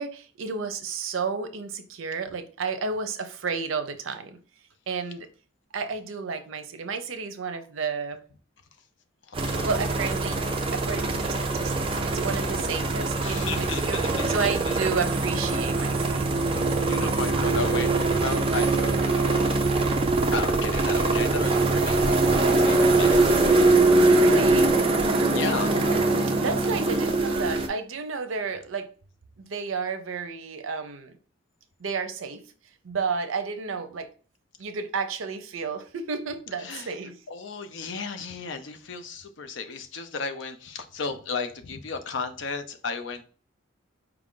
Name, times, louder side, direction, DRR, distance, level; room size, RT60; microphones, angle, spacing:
voice 1, 0.0-4.4 4.9-5.3 5.7-8.2 9.6-10.4 10.7-16.2 17.0-17.1 22.1-22.3 24.1-24.8 26.4-28.9 29.4-31.1 31.8-32.4 32.8-34.1 34.6-37.2, right 5 dB, 80° right, 9 dB, 0.6 m, -32 dB
voice 2, 9.3-9.7 13.2-14.8 16.8-19.5 20.3-23.6 25.3-25.8 36.6-36.9 37.3-43.2, left 4 dB, 65° left, 9 dB, 0.5 m, -34 dB
sound 1, 9.3-27.7, right 2 dB, 30° right, 0.5 m, -23 dB
4.7 x 2.5 x 3.7 m, 0.40 s
head